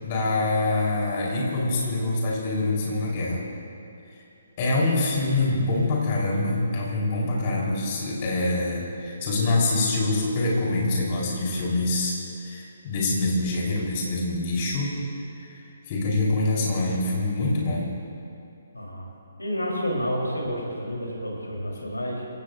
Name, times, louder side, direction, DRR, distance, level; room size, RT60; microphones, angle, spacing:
voice 1, 0.0-3.4 4.6-14.9 15.5-17.9, left 2 dB, 35° left, -4 dB, 4.2 m, -25 dB
voice 2, 18.7-19.1 19.4-22.2, equal, 80° left, -2 dB, 3.9 m, -29 dB
27.5 x 16.5 x 2.7 m, 2.7 s
figure-of-eight pair, 135°, 0 cm